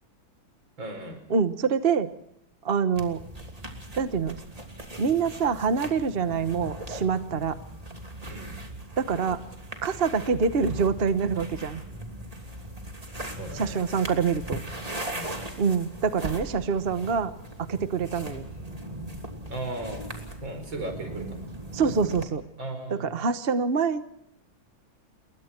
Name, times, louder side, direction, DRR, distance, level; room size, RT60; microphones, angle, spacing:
voice 1, 0.8-1.2 8.2-8.5 13.4-13.8 15.1-15.4 19.5-20.1 20.4-21.4 22.6-23.2, right 2 dB, 80° right, 7 dB, 5.8 m, -36 dB
voice 2, 1.3-2.1 2.6-3.2 4.0-4.4 5.0-7.6 9.0-9.4 9.8-11.8 13.5-14.6 15.6-17.3 17.6-18.5 21.7-22.4 23.0-24.0, right 5 dB, 35° right, 11 dB, 1.1 m, -25 dB
sound 1, 2.9-22.3, right 1 dB, 20° right, 2.9 m, -39 dB
29.5 x 22.0 x 4.5 m, 0.76 s
omnidirectional pair, 2.1 m